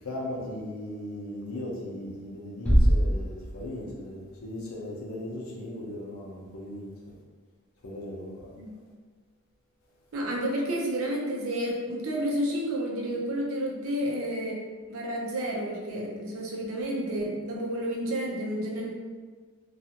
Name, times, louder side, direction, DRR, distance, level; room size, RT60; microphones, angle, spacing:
voice 1, 0.0-7.2 7.8-8.5, left 1 dB, 75° left, -3 dB, 0.6 m, -37 dB
Bass drum, 2.7-4.1, equal, 5° left, 0.4 m, -23 dB
voice 2, 10.1-14.6 14.9-18.9, equal, 75° right, -2 dB, 0.6 m, -30 dB
2.4 x 2.3 x 2.8 m, 1.5 s
head